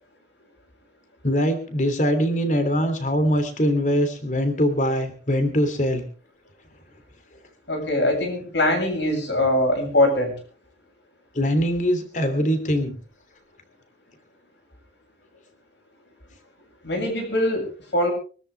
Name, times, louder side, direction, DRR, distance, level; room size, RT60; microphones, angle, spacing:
voice 1, 1.2-6.0 11.3-12.9, equal, 45° left, 8 dB, 3.1 m, -22 dB
voice 2, 7.7-10.3 16.8-18.1, left 1 dB, 80° left, 2 dB, 7.7 m, -22 dB
25.0 x 13.0 x 3.5 m, 0.38 s
head